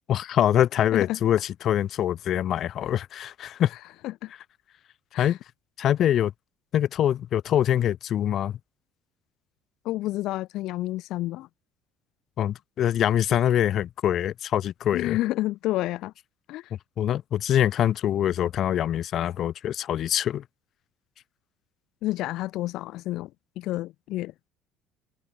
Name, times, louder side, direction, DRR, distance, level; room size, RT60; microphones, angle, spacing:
voice 1, 0.1-3.7 5.2-5.4 5.8-6.3 6.7-8.5 12.4-15.2 17.0-20.4, left 11 dB, 45° left, 1.8 m, -24 dB
voice 2, 9.8-11.5 14.9-16.1 16.5-16.7 22.0-23.3 23.6-24.3, left 17 dB, 65° left, 1.3 m, -29 dB
cardioid pair, 155°, 0 cm